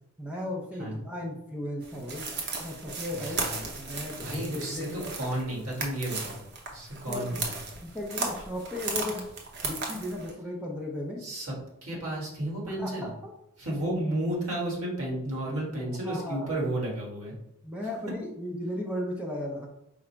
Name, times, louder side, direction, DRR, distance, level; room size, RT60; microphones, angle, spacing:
voice 1, 0.2-2.2 2.6-3.4 3.8-5.1 7.1-7.4 7.8-9.2 9.6-11.2 12.8-13.3 16.0-16.4 17.6-19.7, left 1 dB, 5° right, -1 dB, 0.5 m, -35 dB
sound 1, 1.8-10.3, right 3 dB, 50° right, 0.8 m, -36 dB
voice 2, 3.1-3.7 4.2-4.9 5.2-6.4 6.7-7.5 11.2-11.6 11.8-13.1 13.6-17.3, right 1 dB, 80° right, -3 dB, 1.5 m, -32 dB
4.9 x 2.0 x 4.4 m, 0.82 s
head